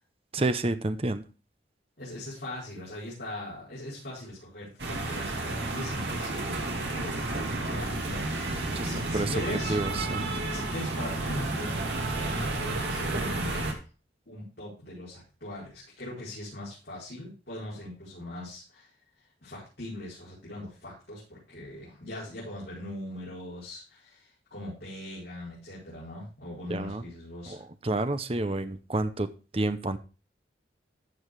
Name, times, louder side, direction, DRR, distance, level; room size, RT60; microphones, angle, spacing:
voice 1, 0.3-1.2 8.7-9.3 9.7-10.3 26.7-27.0 27.5-27.6 27.8-29.3 29.5-30.0, right 2 dB, 30° right, 11 dB, 0.7 m, -29 dB
voice 2, 2.0-7.3 7.7-9.8 10.5-13.7 14.3-18.9 19.4-27.6, left 1 dB, 65° left, -9 dB, 5.5 m, -40 dB
sound 1, 4.8-13.7, right 2 dB, 70° right, 2.5 m, -31 dB
14.0 x 4.7 x 4.7 m, 0.33 s
head